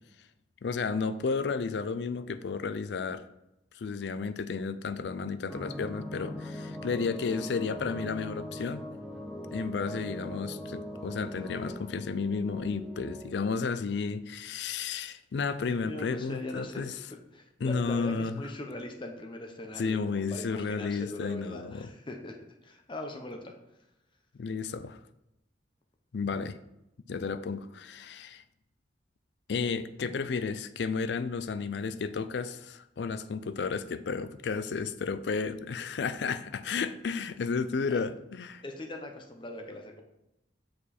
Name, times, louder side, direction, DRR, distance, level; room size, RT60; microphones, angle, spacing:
voice 1, 0.6-3.2 3.7-8.9 9.5-16.9 17.6-18.3 19.8-21.9 24.3-25.0 26.1-26.6 27.1-28.4 29.5-38.6, left 5 dB, 70° left, 12 dB, 0.4 m, -32 dB
sound 1, 5.5-13.3, equal, ahead, 0.8 m, -41 dB
voice 2, 15.8-16.8 17.1-23.9 37.9-38.1 38.6-40.0, left 2 dB, 30° left, 3 dB, 0.8 m, -41 dB
7.0 x 5.1 x 4.2 m, 0.87 s
head